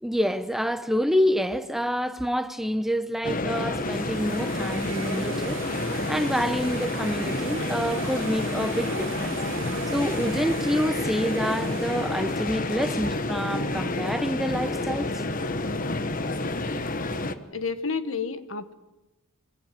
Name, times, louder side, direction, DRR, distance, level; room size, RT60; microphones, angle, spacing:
voice 1, 0.0-5.6 6.1-9.4 9.9-15.2, equal, ahead, 0.8 m, -27 dB
sound 1, 3.2-17.3, left 2 dB, 40° left, 1.2 m, -29 dB
sound 2, 3.5-14.5, right 6 dB, 60° right, 0.8 m, -40 dB
voice 2, 17.5-18.7, left 5 dB, 70° left, 1.5 m, -30 dB
23.5 x 17.5 x 9.2 m
head